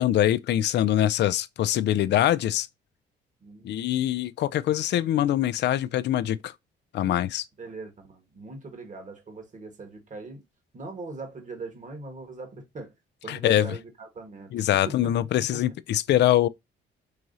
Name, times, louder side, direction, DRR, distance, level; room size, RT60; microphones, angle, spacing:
voice 1, 0.0-2.7 3.6-6.5 6.9-7.4 13.3-13.7 14.5-16.5, left 12 dB, 60° left, 0.4 m, -23 dB
voice 2, 3.4-3.7 7.6-10.4 10.7-12.9 13.2-15.6, right 3 dB, 40° right, 1.5 m, -41 dB
4.7 x 3.0 x 2.6 m
cardioid pair, 90°, 20 cm